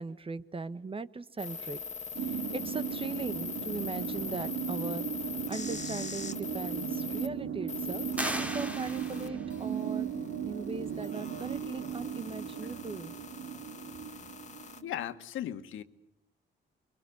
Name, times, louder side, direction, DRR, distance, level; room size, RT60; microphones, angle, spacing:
voice 1, 0.0-1.8 2.2-5.1 5.5-10.1 10.4-13.1, right 3 dB, 25° right, 14 dB, 1.3 m, -39 dB
sound 1, 1.4-7.3 7.7-14.8, left 6 dB, 35° left, 1.7 m, -42 dB
sound 2, 2.1-15.0, right 8 dB, 85° right, 3.1 m, -37 dB
sound 3, 8.1-9.5, equal, 5° right, 2.4 m, -36 dB
voice 2, 14.8-15.8, left 11 dB, 80° left, 9 dB, 1.8 m, -37 dB
25.0 x 24.0 x 9.6 m, 0.79 s
cardioid pair, 90°, 20 cm